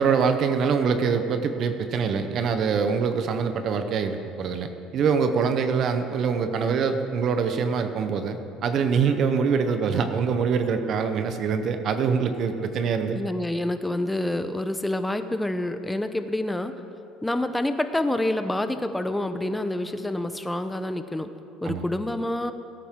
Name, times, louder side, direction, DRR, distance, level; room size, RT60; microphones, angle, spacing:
voice 1, 0.0-13.2 21.6-21.8, right 6 dB, 50° right, 8 dB, 0.8 m, -24 dB
voice 2, 13.1-16.7 17.2-21.3 21.6-22.5, left 1 dB, 10° left, 9 dB, 0.7 m, -27 dB
17.0 x 9.0 x 3.7 m, 2.6 s
supercardioid pair, 100°, 0 cm